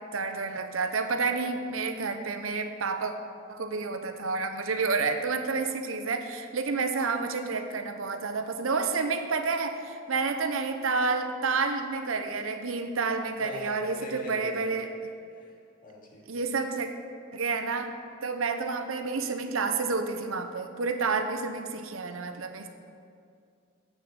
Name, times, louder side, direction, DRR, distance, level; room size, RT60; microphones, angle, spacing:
voice 1, 0.0-3.1 3.5-14.9 16.3-16.9 17.3-18.0 18.2-22.7, right 4 dB, 85° right, 7 dB, 0.8 m, -29 dB
voice 2, 13.4-15.6 15.8-16.4, left 1 dB, 45° left, -3 dB, 2.3 m, -43 dB
8.3 x 7.1 x 7.2 m, 2.3 s
head